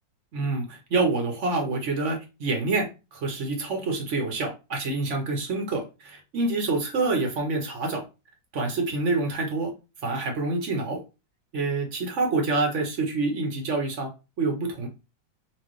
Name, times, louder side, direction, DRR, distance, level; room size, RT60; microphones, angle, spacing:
voice 1, 0.3-8.0 8.5-9.7 10.0-11.0 11.5-14.1 14.4-14.9, right 3 dB, 55° right, 3 dB, 0.8 m, -27 dB
4.3 x 2.5 x 3.0 m, 0.28 s
omnidirectional pair, 2.1 m